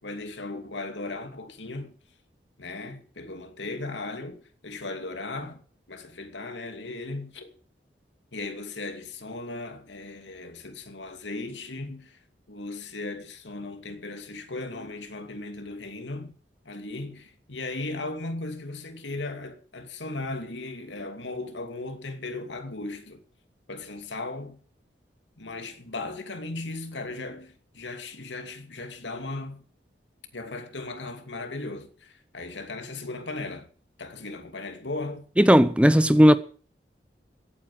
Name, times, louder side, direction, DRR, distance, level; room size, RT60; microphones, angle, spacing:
voice 1, 0.0-1.9 2.6-5.6 5.9-7.5 8.3-12.2 12.5-16.3 16.6-23.2 23.7-24.6 25.4-29.6 30.3-33.7 34.0-35.3, left 2 dB, 90° left, 2.6 m, -37 dB
voice 2, 35.4-36.4, equal, 5° right, 0.7 m, -16 dB
16.5 x 9.1 x 7.7 m
head